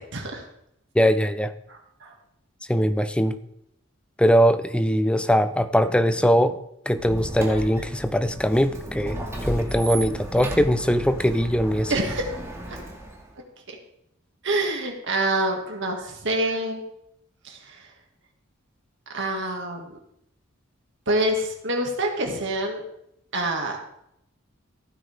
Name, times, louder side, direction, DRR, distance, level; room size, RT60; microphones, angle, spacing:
voice 1, 0.1-0.4 2.0-2.1 11.9-12.3 12.7-12.8 13.7-13.8 14.4-16.8 17.4-17.8 19.1-19.9 21.1-22.8 23.3-23.8, right 1 dB, 60° right, 2 dB, 2.3 m, -26 dB
voice 2, 0.9-1.5 2.7-3.4 4.2-6.6 6.9-11.9, equal, 5° left, 11 dB, 0.5 m, -21 dB
Squeak, 6.9-13.3, right 1 dB, 15° right, 2.2 m, -34 dB
15.0 x 8.9 x 3.6 m, 0.78 s
head